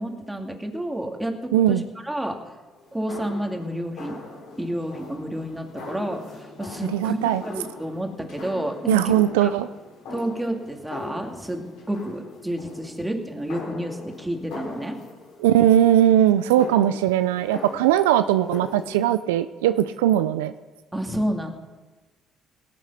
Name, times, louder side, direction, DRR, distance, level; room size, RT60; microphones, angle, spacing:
voice 1, 0.0-2.4 2.9-4.2 4.6-9.5 10.1-15.0 20.9-21.5, right 1 dB, 10° right, 3 dB, 2.3 m, -30 dB
voice 2, 1.5-1.8 6.9-7.4 8.9-9.7 15.4-20.5, right 11 dB, 90° right, 12 dB, 0.4 m, -19 dB
sound 1, 2.8-18.9, left 3 dB, 75° left, 3.7 m, -41 dB
18.0 x 8.4 x 5.8 m, 1.2 s
hypercardioid pair, 60°, 0 cm